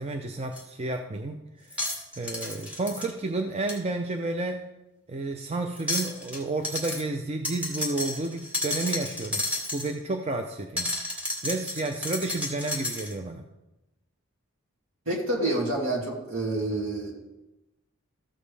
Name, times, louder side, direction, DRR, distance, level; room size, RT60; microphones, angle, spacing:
voice 1, 0.0-1.9 2.2-4.6 5.1-9.5 9.7-10.9 11.4-13.4, right 2 dB, 30° right, 4 dB, 0.5 m, -31 dB
sound 1, 0.5-0.6 1.7-3.1 3.7-3.8 5.8-6.4 6.6-7.0 7.4-9.9 10.8-13.1, left 2 dB, 5° right, 1.7 m, -32 dB
voice 2, 15.1-17.1, right 2 dB, 70° right, -2 dB, 2.5 m, -28 dB
14.0 x 7.2 x 3.3 m, 0.97 s
head